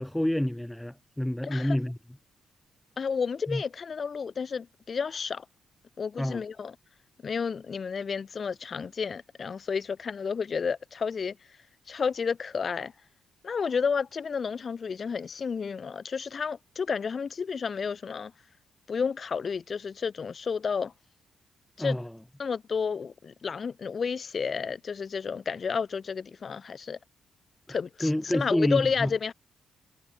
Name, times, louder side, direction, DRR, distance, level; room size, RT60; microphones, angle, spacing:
voice 1, 0.0-2.0 3.5-3.6 6.2-6.4 21.8-22.1 27.7-29.1, left 1 dB, 5° left, 1.1 m, -28 dB
voice 2, 1.4-1.8 3.0-5.4 6.0-6.7 7.2-11.4 11.9-12.9 13.4-18.3 18.9-20.9 21.8-22.0 22.4-27.0 27.7-29.3, left 6 dB, 50° left, 4.7 m, -31 dB
cardioid pair, 80°, 0 cm